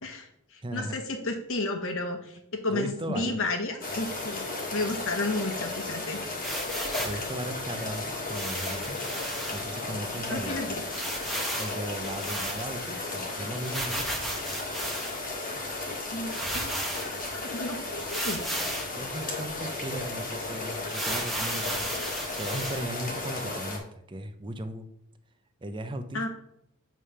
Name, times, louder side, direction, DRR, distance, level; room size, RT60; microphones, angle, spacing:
voice 1, 0.0-4.4 4.7-6.2 10.3-10.8 16.1-18.6 26.1-26.3, left 2 dB, 65° left, 5 dB, 1.1 m, -32 dB
voice 2, 0.6-1.0 2.7-3.4 7.0-9.0 9.5-10.7 11.6-14.1 18.9-22.1 22.4-23.8 24.1-24.9 25.6-26.3, right 1 dB, 20° right, 8 dB, 0.5 m, -37 dB
sound 1, 3.8-23.8, left 2 dB, 40° left, 1.4 m, -35 dB
sound 2, 6.4-7.2 8.3-9.6 10.1-10.2 10.4-10.5 10.9-12.9 13.6-15.3 15.9-16.0 16.3-17.3 18.0-19.0 19.5-19.6 19.9-20.1 20.8-22.8, right 1 dB, ahead, 1.0 m, -34 dB
7.5 x 3.3 x 5.5 m, 0.74 s
head